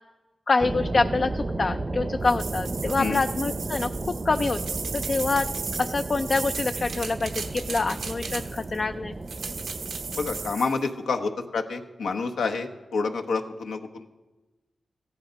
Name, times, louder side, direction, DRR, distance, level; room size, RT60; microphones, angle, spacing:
voice 1, 0.5-5.5 5.8-9.1, left 3 dB, 45° left, 8 dB, 0.4 m, -26 dB
sound 1, 0.6-10.5, right 2 dB, 35° right, 0.7 m, -33 dB
sound 2, 2.2-8.8 9.3-10.8, right 5 dB, 85° right, 1.0 m, -36 dB
voice 2, 10.1-14.0, left 4 dB, 90° left, 4 dB, 1.0 m, -28 dB
14.5 x 10.5 x 5.2 m, 1.1 s
cardioid pair, 70°, 0 cm